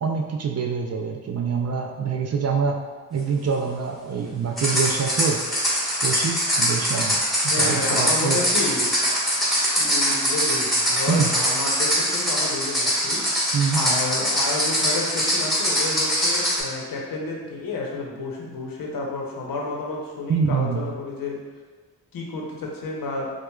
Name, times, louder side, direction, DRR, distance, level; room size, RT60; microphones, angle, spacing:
voice 1, 0.0-2.8 3.1-5.4 6.0-7.2 7.6-8.4 11.1-11.3 13.5-13.9 20.3-20.9, right 6 dB, 40° right, 2 dB, 0.4 m, -25 dB
sound 1, 4.6-16.6, equal, ahead, 1.4 m, -23 dB
voice 2, 7.4-8.9 9.8-21.4 22.1-23.3, left 3 dB, 60° left, -2 dB, 0.9 m, -30 dB
4.6 x 2.3 x 2.3 m, 1.4 s
cardioid pair, 60°, 39 cm